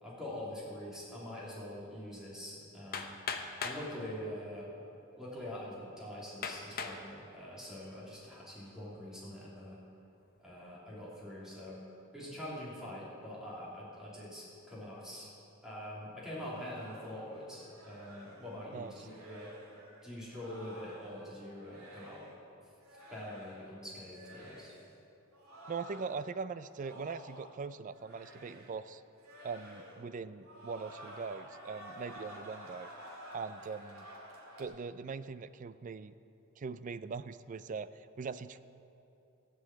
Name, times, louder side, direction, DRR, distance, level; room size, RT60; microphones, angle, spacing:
voice 1, 0.0-3.2 3.6-4.7 5.1-9.8 10.4-11.8 12.1-15.3 15.6-19.5 20.0-22.2 23.1-24.7, left 1 dB, 5° right, -7 dB, 3.1 m, -44 dB
Hammer, 2.9-3.9 4.8-4.9 5.5-5.6 6.4-7.0 7.6-8.0, left 5 dB, 45° left, 0.8 m, -38 dB
sound 1, 16.3-22.4 22.8-23.8 24.1-24.9 25.3-27.7 27.9-28.9 29.2-30.1 30.4-34.7, equal, 90° right, 2.1 m, -52 dB
voice 2, 25.7-29.0 29.4-32.9 33.3-34.1 34.6-36.1 36.6-38.6, right 5 dB, 35° right, 14 dB, 0.3 m, -41 dB
15.5 x 5.5 x 8.4 m, 2.8 s
head